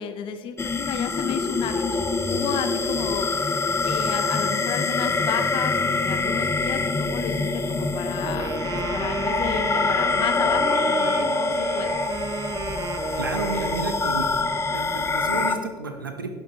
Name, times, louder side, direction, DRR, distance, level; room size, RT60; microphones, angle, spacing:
voice 1, 0.0-12.0, left 8 dB, 50° left, 9 dB, 1.0 m, -33 dB
sound 1, 0.6-15.6, left 3 dB, 25° left, 0.8 m, -25 dB
Wind instrument woodwind instrument, 8.2-14.1, right 6 dB, 40° right, 0.8 m, -33 dB
voice 2, 13.2-14.5 14.7-16.3, right 4 dB, 90° right, 5 dB, 0.9 m, -31 dB
11.5 x 10.5 x 3.0 m, 1.6 s
figure-of-eight pair, 60°, 11 cm